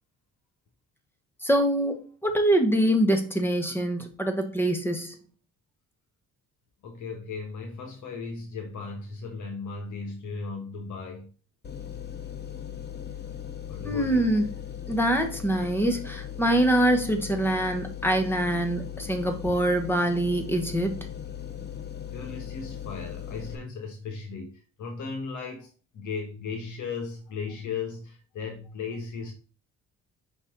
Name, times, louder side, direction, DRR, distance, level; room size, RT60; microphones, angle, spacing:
voice 1, 1.4-5.2 13.8-14.4 14.9-21.1, right 1 dB, 5° left, 1.5 m, -24 dB
voice 2, 6.8-11.3 13.7-14.3 22.1-29.3, left 5 dB, 75° left, 1.5 m, -36 dB
sound 1, 11.6-23.6, left 9 dB, 35° left, 0.9 m, -38 dB
5.5 x 4.4 x 3.8 m
cardioid pair, 90°, 30 cm